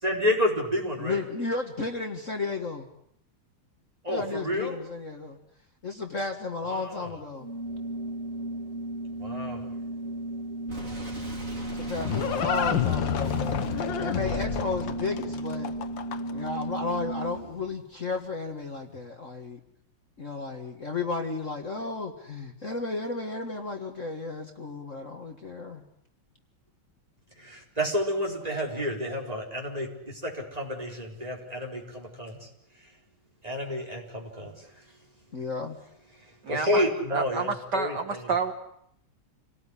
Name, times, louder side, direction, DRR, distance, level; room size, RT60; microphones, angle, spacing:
voice 1, 0.0-1.2 4.0-4.8 6.7-7.1 9.2-9.6 27.4-32.5 33.4-34.7 36.5-38.2, equal, 15° right, 0 dB, 4.6 m, -30 dB
voice 2, 1.0-2.9 4.1-5.4 5.8-7.5 11.7-13.6 14.0-15.7 16.3-19.6 20.2-25.8 35.3-35.8, left 3 dB, 40° left, 4 dB, 1.9 m, -33 dB
Organ, 7.4-17.6, right 1 dB, 70° right, 3.9 m, -35 dB
Boom, 10.7-16.3, right 2 dB, 35° right, 5.1 m, -41 dB
Livestock farm animals working animals, 11.4-16.5, left 8 dB, 65° left, 1.8 m, -29 dB
voice 3, 37.1-38.5, right 4 dB, 55° right, 6 dB, 1.9 m, -29 dB
28.0 x 18.0 x 9.9 m, 0.72 s
omnidirectional pair, 2.3 m